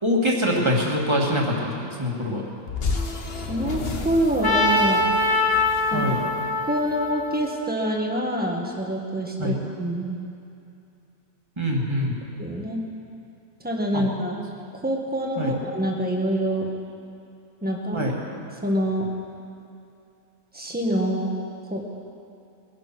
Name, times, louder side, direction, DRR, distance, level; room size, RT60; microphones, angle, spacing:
voice 1, 0.0-2.4 5.9-6.2 9.4-9.6 11.6-12.2 13.9-14.0 15.4-15.6 17.9-18.1, equal, 25° right, -2 dB, 2.4 m, -24 dB
sound 1, 2.7-7.1, left 4 dB, 55° left, 1.5 m, -32 dB
voice 2, 3.5-5.2 5.9-6.2 6.7-10.2 12.4-12.8 13.6-14.5 14.7-16.7 17.6-18.1 18.6-19.1 20.5-21.4 21.7-21.8, right 1 dB, 10° right, 0 dB, 1.7 m, -26 dB
Trumpet, 4.4-8.5, left 2 dB, 20° left, 1.1 m, -24 dB
21.5 x 11.0 x 6.1 m, 2.6 s
omnidirectional pair, 1.2 m